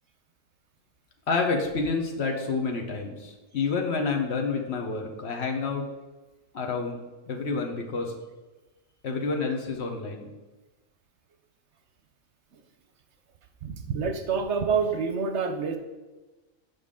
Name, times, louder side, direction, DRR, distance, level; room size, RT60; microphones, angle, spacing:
voice 1, 1.3-5.9 6.5-8.1 9.0-10.3, left 4 dB, 55° left, 2 dB, 1.1 m, -29 dB
voice 2, 13.6-15.8, right 5 dB, 65° right, 6 dB, 0.9 m, -27 dB
8.1 x 5.3 x 3.6 m, 1.1 s
omnidirectional pair, 1.4 m